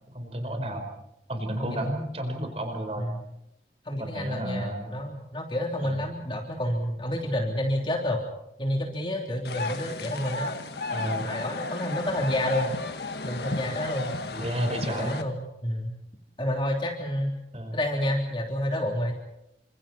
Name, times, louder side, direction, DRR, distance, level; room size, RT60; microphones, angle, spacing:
voice 1, 0.1-0.9 1.3-3.1 3.9-4.9 5.8-6.0 10.9-11.4 14.3-15.1 17.5-17.8, right 1 dB, 35° right, 5 dB, 4.7 m, -32 dB
voice 2, 1.5-1.9 3.0-3.2 3.9-8.2 8.6-10.5 11.2-12.8 13.2-14.1 14.9-15.3 15.6-15.9 16.4-17.3 17.7-19.1, left 1 dB, 30° left, 0 dB, 3.3 m, -29 dB
sound 1, 9.4-15.2, left 3 dB, 70° left, 1.7 m, -34 dB
28.5 x 26.0 x 4.4 m, 0.81 s
head